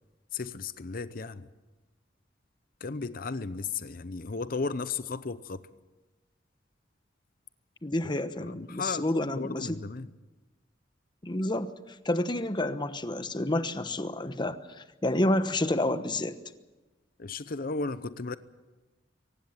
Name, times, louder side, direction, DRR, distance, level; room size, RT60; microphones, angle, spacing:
voice 1, 0.3-1.5 2.8-5.6 8.4-10.1 17.2-18.4, left 4 dB, 50° left, 0.7 m, -35 dB
voice 2, 7.8-9.8 11.2-11.7 12.0-16.4, left 1 dB, 25° left, 1.1 m, -29 dB
23.5 x 18.5 x 7.4 m
head